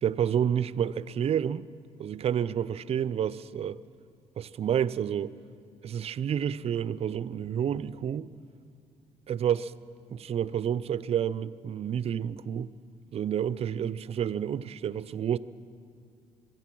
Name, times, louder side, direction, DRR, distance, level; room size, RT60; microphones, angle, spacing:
voice 1, 0.0-1.7 2.0-3.8 4.4-5.3 5.8-8.3 9.3-9.7 10.1-12.7 13.1-15.4, right 9 dB, 50° right, 0.5 m, -29 dB
25.5 x 9.1 x 6.1 m
supercardioid pair, 60°, 13 cm